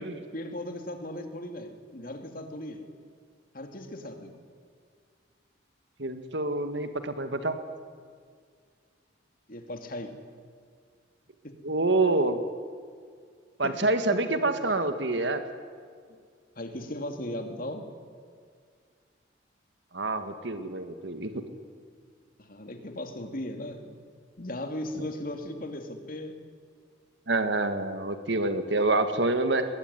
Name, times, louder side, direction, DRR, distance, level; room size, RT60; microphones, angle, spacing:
voice 1, 0.0-2.8 3.5-4.4 9.5-10.1 11.4-11.5 13.6-13.8 16.1-16.2 16.6-17.9 22.4-23.9 24.4-26.4, left 1 dB, 50° left, 5 dB, 2.8 m, -37 dB
voice 2, 6.0-7.6 11.6-12.4 13.6-15.4 19.9-21.3 27.3-29.7, right 2 dB, 65° right, 8 dB, 1.9 m, -27 dB
22.0 x 20.5 x 9.7 m, 2.1 s
head